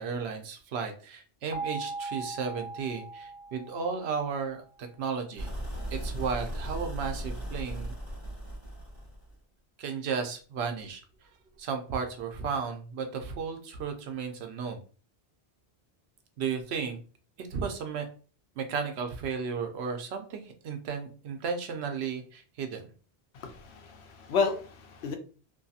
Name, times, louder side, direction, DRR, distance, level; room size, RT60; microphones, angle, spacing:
voice 1, 0.0-5.6 5.9-7.9 9.8-11.3 11.6-14.8 16.4-17.0 17.4-18.1 18.6-22.8, right 6 dB, 80° right, 5 dB, 0.9 m, -34 dB
sound 1, 1.5-4.5, right 3 dB, 15° right, 1.2 m, -39 dB
sound 2, 5.4-9.3, right 1 dB, 40° left, 1.3 m, -37 dB
voice 2, 23.3-25.1, left 5 dB, 80° left, 6 dB, 0.8 m, -31 dB
2.7 x 2.6 x 2.3 m, 0.38 s
omnidirectional pair, 1.1 m